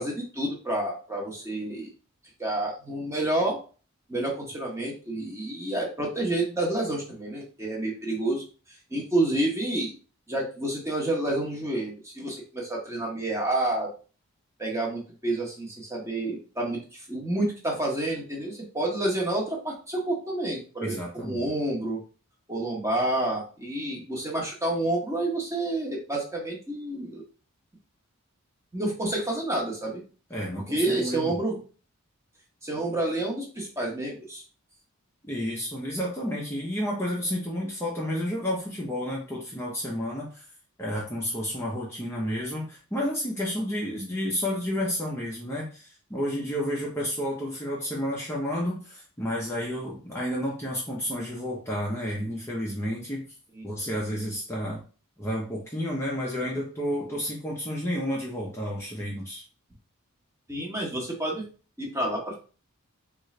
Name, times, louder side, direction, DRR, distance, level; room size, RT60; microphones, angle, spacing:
voice 1, 0.0-1.9 2.4-3.6 4.1-9.9 10.3-13.9 14.6-22.0 22.5-27.2 28.7-30.0 30.7-31.6 32.6-34.4 53.5-53.7 60.5-61.4 61.8-62.3, right 1 dB, 15° right, -1 dB, 0.8 m, -29 dB
voice 2, 20.8-21.4 30.3-31.4 35.2-40.5 40.8-53.2 53.6-54.8 55.2-59.4, equal, 10° left, -4 dB, 0.6 m, -31 dB
3.8 x 2.4 x 3.1 m, 0.37 s
head